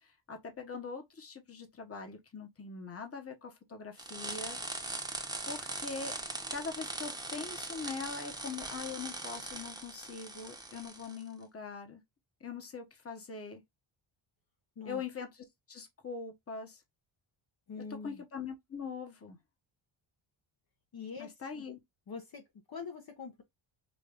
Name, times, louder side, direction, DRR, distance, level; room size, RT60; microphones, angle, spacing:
voice 1, 0.0-4.6 5.5-6.2 6.5-12.0 12.4-13.6 14.8-15.3 15.7-16.8 18.0-19.4 21.2-21.8, left 5 dB, 30° left, 1.2 m, -42 dB
sound 1, 4.0-11.2, right 2 dB, 10° right, 1.0 m, -41 dB
voice 2, 17.7-18.2 20.9-21.6 22.1-23.4, left 5 dB, 50° left, 1.0 m, -44 dB
5.2 x 2.7 x 2.5 m
wide cardioid pair, 135°, 48 cm